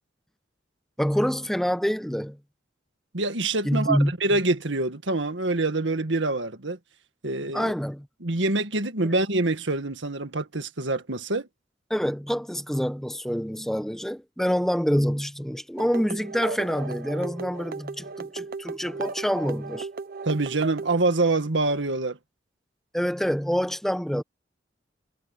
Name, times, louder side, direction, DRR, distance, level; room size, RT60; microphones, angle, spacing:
voice 1, 1.0-2.4 3.6-4.1 7.5-8.1 11.9-19.9 22.9-24.2, equal, ahead, 0.9 m, -26 dB
voice 2, 3.1-6.8 7.2-7.7 8.2-11.5 20.2-22.2, right 2 dB, 85° right, 1.9 m, -25 dB
sound 1, 15.8-21.0, right 4 dB, 55° right, 0.7 m, -36 dB
head